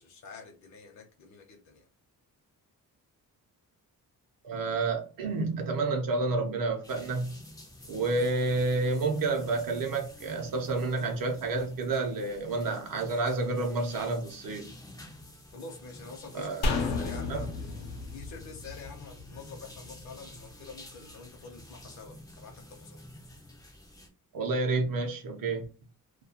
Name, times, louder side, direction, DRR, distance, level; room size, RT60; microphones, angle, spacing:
voice 1, 0.0-1.8 15.5-23.0, left 4 dB, 50° left, 0.6 m, -47 dB
voice 2, 4.4-7.4 7.9-14.7 16.3-16.9 17.3-17.5 24.3-25.6, right 3 dB, 65° right, 0.6 m, -30 dB
sound 1, 6.8-24.1, left 1 dB, 10° left, 0.3 m, -50 dB
sound 2, 16.6-20.0 20.3-20.4, left 3 dB, 85° left, 0.7 m, -33 dB
2.2 x 2.2 x 2.7 m
wide cardioid pair, 180°, 37 cm